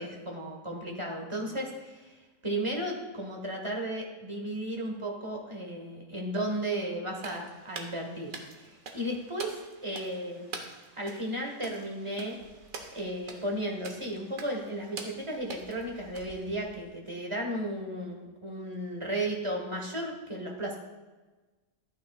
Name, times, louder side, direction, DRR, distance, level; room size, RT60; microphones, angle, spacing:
voice 1, 0.0-2.2 2.4-8.3 8.9-10.5 11.0-12.4 12.9-20.8, right 1 dB, 20° right, 0 dB, 1.5 m, -34 dB
sound 1, 7.2-16.9, right 4 dB, 85° right, 1.5 m, -46 dB
14.0 x 9.2 x 2.4 m, 1.2 s
omnidirectional pair, 1.4 m